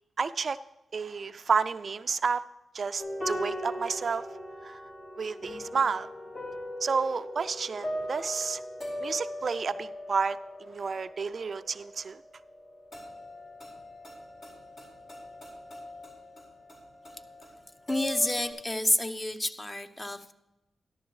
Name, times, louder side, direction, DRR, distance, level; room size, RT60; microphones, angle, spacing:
voice 1, 0.2-0.6 0.9-2.4 2.7-4.3 4.6-4.8 5.2-6.1 6.8-8.6 9.0-12.2, right 5 dB, 55° right, 13 dB, 0.3 m, -30 dB
sound 1, 3.0-18.5, left 1 dB, 60° left, 4.6 m, -40 dB
voice 2, 17.9-20.3, left 1 dB, 20° left, 9 dB, 0.8 m, -29 dB
13.5 x 11.5 x 3.1 m, 0.95 s
cardioid pair, 50°, 0 cm